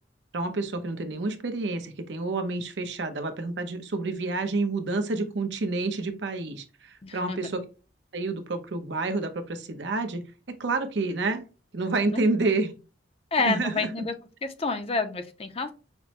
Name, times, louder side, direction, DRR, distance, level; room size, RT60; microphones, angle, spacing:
voice 1, 0.3-7.6 8.1-10.2 10.6-11.4 11.7-12.7 13.4-13.9, right 3 dB, 75° right, 7 dB, 0.7 m, -29 dB
voice 2, 7.0-7.4 12.1-12.5 13.3-14.1 14.6-15.7, left 3 dB, 30° left, 8 dB, 0.5 m, -29 dB
5.8 x 2.1 x 2.9 m, 0.33 s
head